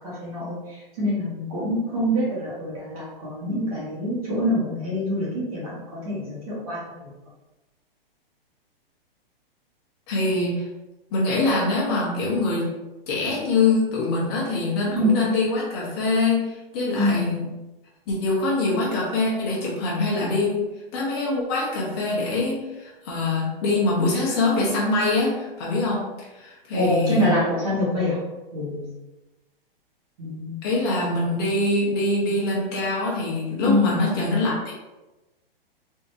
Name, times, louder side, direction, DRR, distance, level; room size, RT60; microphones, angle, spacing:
voice 1, 0.0-7.1 14.9-15.2 17.0-17.3 26.7-28.2 28.5-28.9 30.2-30.6 33.6-34.0, equal, 35° right, -8 dB, 1.2 m, -25 dB
voice 2, 10.1-10.6 11.1-12.7 13.1-17.5 18.1-20.6 20.9-26.0 26.3-27.3 30.6-34.7, left 2 dB, 25° left, -4 dB, 0.8 m, -24 dB
3.6 x 2.7 x 2.6 m, 1.0 s
hypercardioid pair, 165°, 30 cm